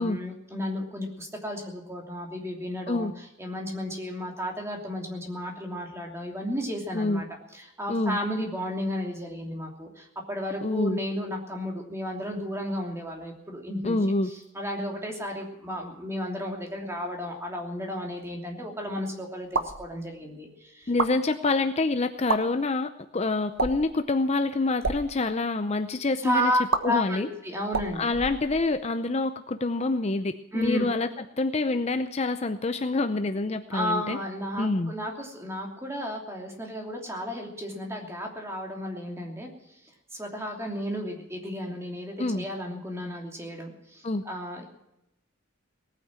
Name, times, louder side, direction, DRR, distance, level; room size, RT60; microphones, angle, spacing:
voice 1, 0.0-7.3 7.5-14.0 14.3-20.9 26.2-28.1 30.5-30.9 33.7-39.8 40.1-44.6, equal, 15° right, 1 dB, 2.9 m, -33 dB
voice 2, 10.6-11.0 13.8-14.3 20.9-26.5 26.8-27.3 28.0-31.1 31.4-34.2 34.6-34.9 42.2-42.5 44.0-44.2, left 3 dB, 35° left, 9 dB, 0.6 m, -27 dB
sound 1, 19.4-19.8 20.8-21.1 22.2-22.4 23.6-23.9 24.7-25.0 26.7-26.8 27.7-28.9, right 4 dB, 85° right, 1.3 m, -29 dB
19.0 x 9.3 x 7.5 m, 0.84 s
head